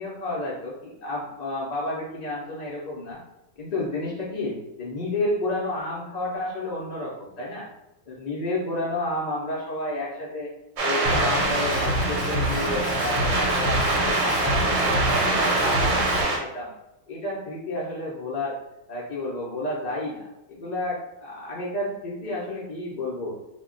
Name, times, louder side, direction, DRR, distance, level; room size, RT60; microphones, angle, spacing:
voice 1, 0.0-3.2 3.6-7.7 8.1-10.5 10.8-16.7 17.1-18.6 18.9-23.4, left 1 dB, 60° left, -5 dB, 0.4 m, -31 dB
sound 1, 10.8-16.4, right 2 dB, 65° right, 0.8 m, -24 dB
Drum kit, 11.0-16.2, left 1 dB, 90° left, 1.0 m, -28 dB
2.2 x 2.1 x 3.6 m, 0.93 s
omnidirectional pair, 1.4 m